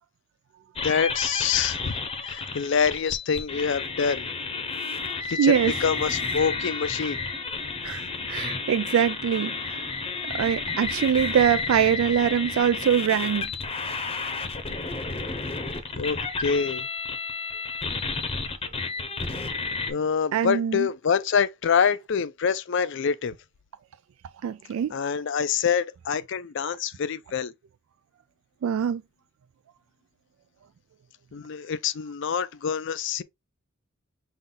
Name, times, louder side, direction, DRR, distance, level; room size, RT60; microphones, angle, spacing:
voice 1, 0.8-1.9 2.3-4.3 5.3-7.2 16.0-16.9 19.9-23.3 24.9-27.5 31.3-33.2, left 6 dB, 60° left, 0.4 m, -26 dB
sound 1, 0.8-19.9, left 4 dB, 30° left, 0.7 m, -31 dB
voice 2, 5.4-5.7 7.8-9.8 10.3-13.5 20.3-20.9 24.4-24.9 28.6-29.0, right 8 dB, 75° right, 0.3 m, -23 dB
5.6 x 2.4 x 3.8 m
head